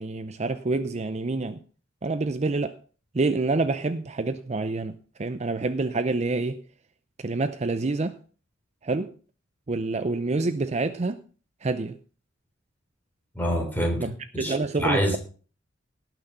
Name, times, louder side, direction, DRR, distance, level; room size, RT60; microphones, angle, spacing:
voice 1, 0.0-1.6 2.0-2.8 3.1-6.6 7.2-8.2 8.8-9.1 9.7-11.2 11.6-12.0 14.0-14.1 14.4-15.2, right 3 dB, 35° right, 0.6 m, -27 dB
voice 2, 13.3-14.0 14.3-15.2, equal, 10° left, 3.5 m, -26 dB
18.0 x 6.1 x 5.6 m
head